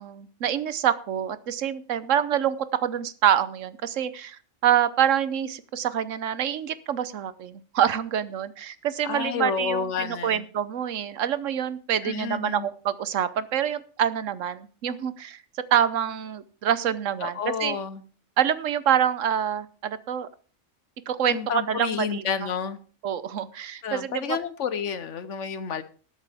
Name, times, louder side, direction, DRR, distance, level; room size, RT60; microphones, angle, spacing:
voice 1, 0.0-15.4 15.7-17.8 18.4-20.3 21.1-22.5 23.0-24.4, right 9 dB, 70° right, 15 dB, 1.1 m, -26 dB
voice 2, 9.0-10.4 12.0-12.7 17.2-18.0 21.3-22.8 23.8-25.8, left 7 dB, 65° left, 12 dB, 1.2 m, -30 dB
19.5 x 8.2 x 3.5 m, 0.39 s
omnidirectional pair, 1.4 m